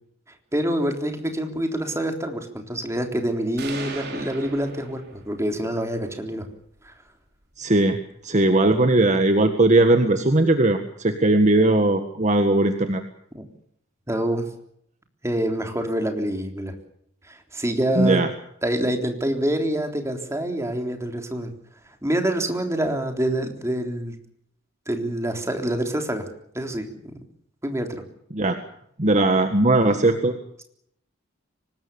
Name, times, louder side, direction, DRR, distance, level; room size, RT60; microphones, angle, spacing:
voice 1, 0.5-6.5 6.8-6.9 13.3-13.4 14.1-14.5 15.2-16.7 17.2-18.2 18.6-21.5 22.0-24.2 24.9-26.3 26.5-27.1 27.6-28.0, right 1 dB, 15° right, 4 dB, 3.6 m, -26 dB
sound 1, 3.6-5.5, right 3 dB, 55° right, 5.1 m, -37 dB
voice 2, 7.6-8.0 8.2-13.0 18.0-18.3 28.3-28.6 29.0-30.3, right 2 dB, 35° right, 7 dB, 1.7 m, -19 dB
24.5 x 19.5 x 7.1 m, 0.70 s
head